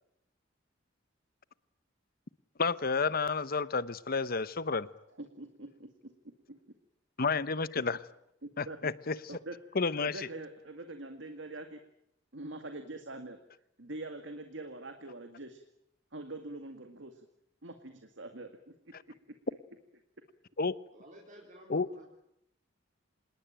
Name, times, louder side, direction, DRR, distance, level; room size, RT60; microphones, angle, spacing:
voice 1, 2.6-4.9 7.2-8.0 8.6-9.4 9.7-10.3 20.6-20.7 21.7-21.9, left 4 dB, 50° left, 0.9 m, -31 dB
voice 2, 5.2-6.6 8.4-8.9 9.3-9.6 10.0-11.8 12.3-13.4 13.8-15.6 16.1-17.3 17.6-18.7, right 2 dB, 70° right, 2.1 m, -44 dB
voice 3, 20.9-22.0, equal, 40° right, 3.9 m, -51 dB
26.5 x 20.5 x 9.0 m
head